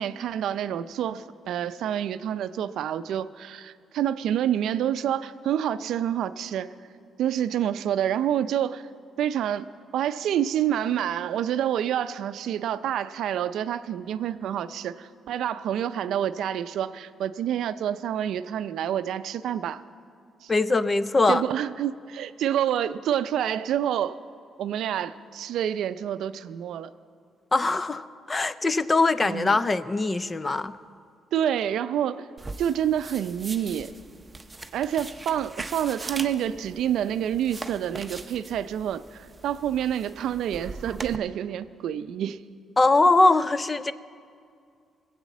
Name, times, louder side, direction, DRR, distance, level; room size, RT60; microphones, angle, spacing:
voice 1, 0.0-6.7 7.2-8.8 9.2-9.7 9.9-19.8 20.4-20.5 21.3-24.2 24.6-26.9 29.2-29.6 31.3-32.3 32.6-33.9 34.7-42.4, right 10 dB, 75° right, 13 dB, 0.4 m, -28 dB
voice 2, 20.5-21.4 27.5-30.7 42.8-43.9, left 3 dB, 25° left, 15 dB, 0.5 m, -22 dB
sound 1, 32.4-41.2, right 3 dB, 20° right, 0.7 m, -41 dB
19.5 x 8.1 x 7.2 m, 2.3 s
cardioid pair, 90°, 0 cm